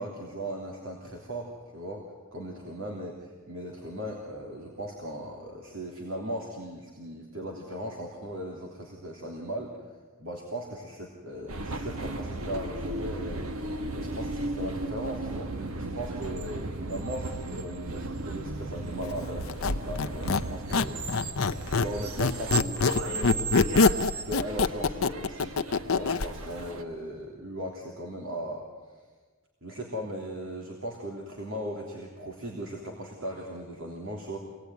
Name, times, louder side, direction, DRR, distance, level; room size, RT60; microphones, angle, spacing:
voice 1, 0.0-2.0 2.3-9.8 10.2-21.0 21.8-25.6 25.8-28.7 29.6-34.4, equal, 70° right, -1 dB, 3.3 m, -38 dB
sound 1, 11.5-26.8, right 2 dB, 90° right, 1.5 m, -36 dB
Squeak, 19.4-21.9 22.2-26.3, left 4 dB, 75° left, 0.8 m, -24 dB
26.0 x 19.0 x 9.5 m, 1.4 s
head